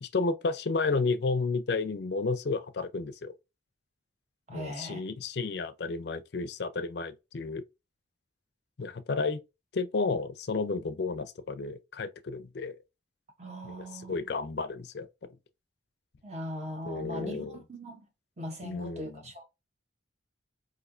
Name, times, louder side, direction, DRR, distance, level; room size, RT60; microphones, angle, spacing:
voice 1, 0.0-3.3 4.5-7.6 8.8-9.4 9.7-12.8 13.6-15.1 16.9-17.6 18.6-19.1, left 4 dB, 55° left, 0.4 m, -32 dB
voice 2, 4.5-5.0 13.4-14.1 16.2-18.0 18.4-19.4, equal, 35° right, 0.7 m, -39 dB
4.2 x 2.6 x 2.4 m
head